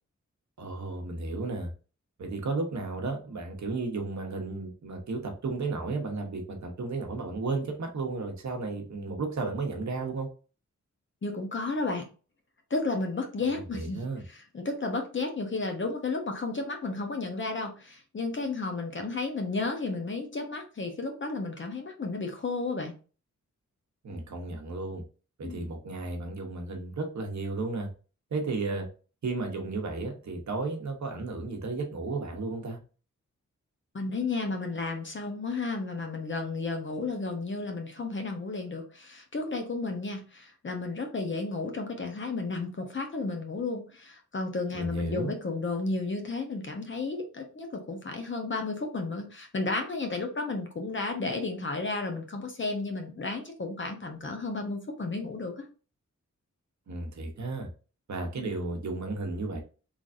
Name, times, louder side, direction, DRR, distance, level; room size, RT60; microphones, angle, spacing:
voice 1, 0.6-1.7 2.2-10.3 13.5-14.2 24.0-25.0 25.4-27.9 28.3-28.9 29.2-32.8 44.7-45.3 56.9-57.7 58.1-59.6, right 3 dB, 70° right, 3 dB, 1.0 m, -33 dB
voice 2, 11.2-12.1 12.7-14.0 14.3-22.9 25.4-25.6 33.9-55.6 58.4-58.5, left 3 dB, 40° left, 4 dB, 0.8 m, -33 dB
3.9 x 3.2 x 2.5 m, 0.36 s
wide cardioid pair, 150°, 30 cm